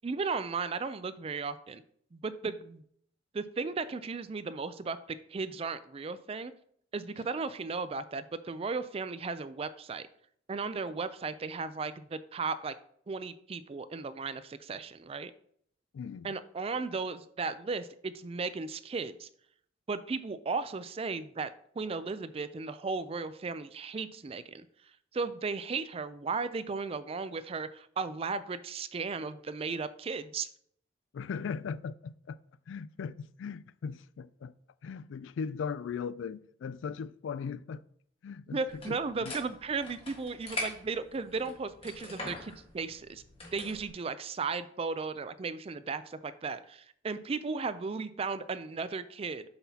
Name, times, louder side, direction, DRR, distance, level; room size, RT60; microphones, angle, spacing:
voice 1, 0.0-1.8 2.1-2.8 3.3-5.0 5.3-6.5 6.9-10.1 10.5-12.7 13.1-15.3 16.2-19.3 19.9-21.5 21.8-24.6 25.1-30.5 38.5-43.2 43.5-49.4, right 4 dB, 30° right, 0.4 m, -35 dB
voice 2, 15.9-16.3 31.1-32.4 32.7-34.5 34.8-37.8 38.2-39.3, left 6 dB, 80° left, 0.3 m, -38 dB
sound 1, 38.7-43.9, left 1 dB, 30° left, 1.5 m, -43 dB
7.6 x 6.1 x 2.8 m
head